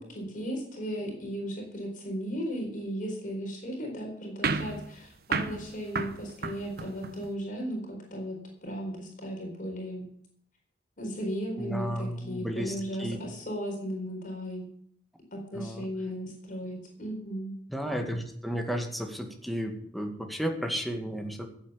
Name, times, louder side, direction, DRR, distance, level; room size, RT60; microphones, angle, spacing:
voice 1, 0.0-10.1 11.0-14.6 15.3-17.5, equal, 50° left, 0 dB, 4.4 m, -36 dB
sound 1, 4.4-7.3, right 4 dB, 60° right, 1.1 m, -33 dB
voice 2, 11.6-13.2 15.5-15.9 17.7-21.5, equal, ahead, 3 dB, 2.1 m, -33 dB
14.5 x 8.6 x 7.1 m, 0.66 s
head